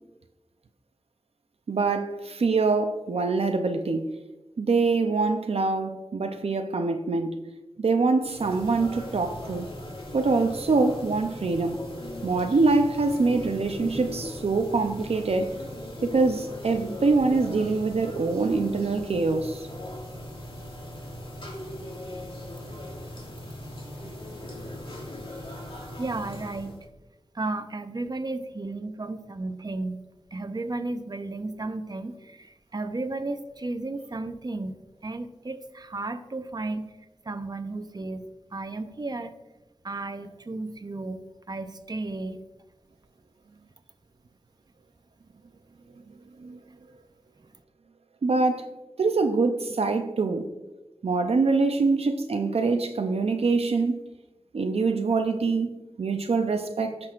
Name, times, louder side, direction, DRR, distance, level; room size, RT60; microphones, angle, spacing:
voice 1, 1.7-4.1 4.6-7.4 7.8-9.7 10.1-11.8 12.2-15.6 16.0-19.7 46.4-46.6 48.2-48.7 49.0-50.5 51.0-54.0 54.5-55.7 56.0-57.0, right 3 dB, 80° right, 0.6 m, -24 dB
sound 1, 8.2-26.8, left 1 dB, 60° left, 2.0 m, -39 dB
voice 2, 25.4-26.8 27.3-30.0 30.3-34.8 35.0-36.9 37.2-39.3 39.8-41.2 41.5-42.4, right 2 dB, 40° right, 0.8 m, -34 dB
16.5 x 6.1 x 2.5 m
wide cardioid pair, 65°, 10 cm